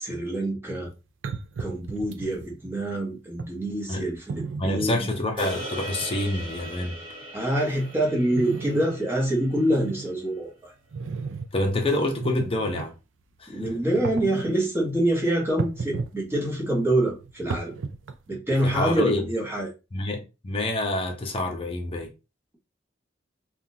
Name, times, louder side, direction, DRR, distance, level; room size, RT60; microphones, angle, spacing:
voice 1, 0.0-0.9 1.6-5.1 7.3-10.7 13.5-17.7 18.3-19.7, right 1 dB, 15° right, 1.1 m, -26 dB
sound 1, 0.7-0.8 1.2-2.4 3.4-3.5 4.3-5.0 5.5-5.6 6.0-6.1 6.4-6.7 7.2-9.0 9.4-10.1 10.9-11.5 12.1-12.9 13.9-14.6 15.6-16.2 16.5-18.3, right 4 dB, 85° right, 0.4 m, -34 dB
voice 2, 4.6-7.0 11.5-12.9 13.4-13.7 18.6-19.3 19.9-22.1, left 1 dB, 30° left, 0.7 m, -27 dB
sound 2, 5.4-9.8, equal, 30° right, 1.6 m, -39 dB
3.6 x 2.3 x 2.7 m
head